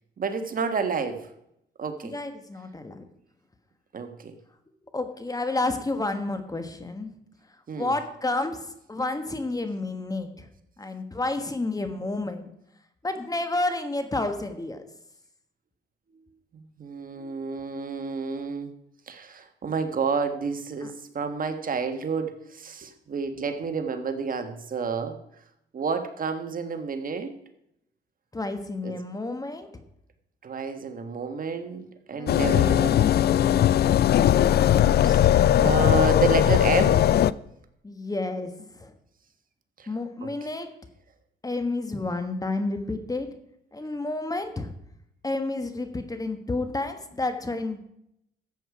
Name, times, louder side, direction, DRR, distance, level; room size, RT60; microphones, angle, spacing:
voice 1, 0.2-1.3 1.8-2.2 3.9-4.3 7.7-7.9 16.5-18.7 19.1-25.2 25.7-27.3 28.8-29.0 30.4-33.0 34.7-35.3 35.6-37.0 39.8-39.9 40.2-40.3, right 5 dB, 45° right, 7 dB, 1.4 m, -30 dB
voice 2, 2.0-3.0 4.9-7.1 7.8-10.5 10.8-12.5 13.0-14.8 20.8-20.9 28.3-29.7 32.1-33.6 37.8-38.9 39.9-40.7 41.4-43.3 43.7-44.7 45.2-47.8, left 2 dB, 20° left, 8 dB, 1.4 m, -30 dB
sound 1, 32.3-37.3, left 11 dB, 55° left, 0.4 m, -19 dB
13.5 x 8.1 x 4.9 m, 0.78 s
cardioid pair, 90°, 20 cm